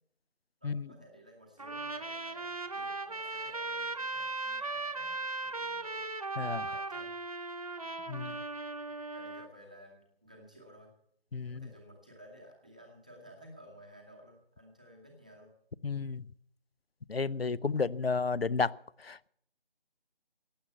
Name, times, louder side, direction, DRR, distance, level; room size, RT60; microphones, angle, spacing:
voice 1, 0.6-6.3 6.6-7.2 8.2-8.5 8.8-10.9 11.4-15.5 17.7-17.9, equal, 10° right, 0.9 m, -55 dB
Trumpet, 1.6-9.5, right 3 dB, 40° right, 1.0 m, -38 dB
voice 2, 6.4-6.7 8.1-8.3 11.3-11.7 15.8-16.2 17.1-18.7 19.0-19.3, left 4 dB, 80° left, 0.7 m, -32 dB
15.5 x 9.3 x 8.1 m
figure-of-eight pair, 160°, 30 cm